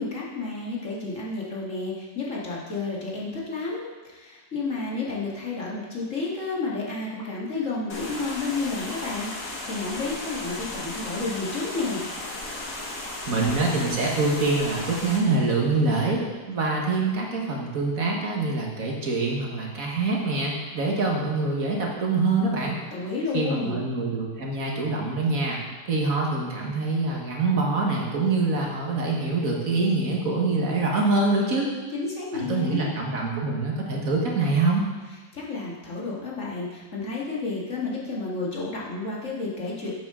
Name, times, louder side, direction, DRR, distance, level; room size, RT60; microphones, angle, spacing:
voice 1, 0.0-12.0 22.9-23.8 31.9-32.9 35.3-39.9, left 3 dB, 50° left, -5 dB, 2.1 m, -31 dB
sound 1, 7.9-15.2, left 2 dB, 70° left, 2.0 m, -35 dB
voice 2, 13.3-16.2 16.5-22.8 23.3-25.6 25.9-31.7 32.3-34.9, right 3 dB, 60° right, -1 dB, 1.8 m, -25 dB
10.5 x 8.2 x 3.7 m, 1.3 s
omnidirectional pair, 1.7 m